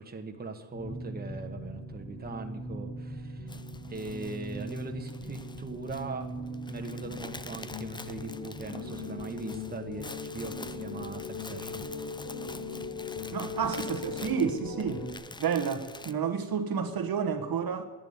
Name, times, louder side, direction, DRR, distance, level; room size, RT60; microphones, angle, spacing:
voice 1, 0.0-3.5 3.9-6.3 6.7-10.1 10.3-11.8, right 3 dB, 20° right, 1.3 m, -40 dB
sound 1, 0.7-15.1, left 2 dB, 50° left, 3.6 m, -39 dB
sound 2, 3.5-16.1, left 3 dB, 10° left, 0.4 m, -47 dB
voice 2, 13.3-15.0 15.4-17.8, right 7 dB, 50° right, 1.3 m, -30 dB
11.0 x 10.5 x 9.6 m
cardioid pair, 120°, 45 cm